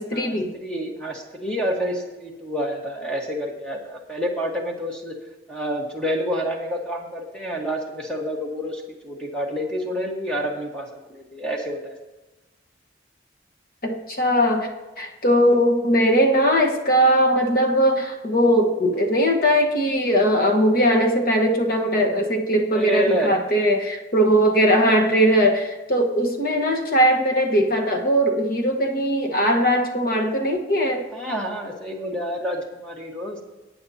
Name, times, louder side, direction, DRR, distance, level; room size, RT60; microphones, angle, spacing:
voice 1, 0.0-0.5 13.8-14.7 15.0-31.0, equal, 50° left, 2 dB, 1.3 m, -20 dB
voice 2, 0.6-5.1 5.5-12.0 22.7-23.4 31.1-33.4, equal, 5° left, -1 dB, 1.3 m, -28 dB
18.5 x 8.7 x 2.8 m, 1.1 s
head